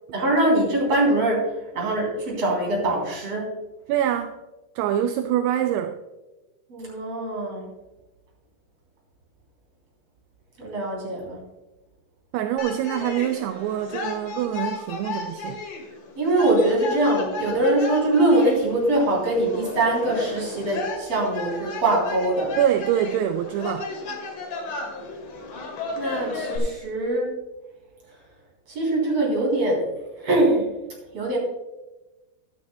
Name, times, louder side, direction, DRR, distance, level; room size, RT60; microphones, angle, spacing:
voice 1, 0.1-3.5 6.7-7.7 10.6-11.4 16.2-22.5 26.0-27.3 28.7-29.8 30.2-30.7 31.1-31.4, right 1 dB, 35° right, -2 dB, 4.2 m, -22 dB
voice 2, 3.9-4.4 4.8-6.0 12.3-15.6 22.6-23.9, right 10 dB, 80° right, 7 dB, 2.5 m, -25 dB
sound 1, 12.6-26.6, left 3 dB, 55° left, 3.2 m, -34 dB
14.0 x 11.5 x 2.3 m, 1.1 s
omnidirectional pair, 4.9 m